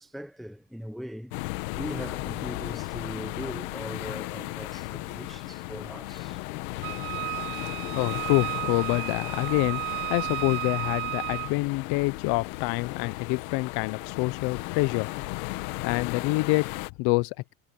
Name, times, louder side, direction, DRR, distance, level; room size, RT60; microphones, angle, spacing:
voice 1, 0.0-1.3 1.8-6.5 7.9-8.0, equal, ahead, 0.7 m, -40 dB
sound 1, 1.3-16.9, left 21 dB, 85° left, 1.7 m, -35 dB
Wind instrument woodwind instrument, 6.8-11.5, right 25 dB, 90° right, 0.6 m, -33 dB
voice 2, 7.9-9.8 10.1-15.1 15.8-17.5, left 23 dB, 70° left, 0.9 m, -27 dB
supercardioid pair, 110°, 40 cm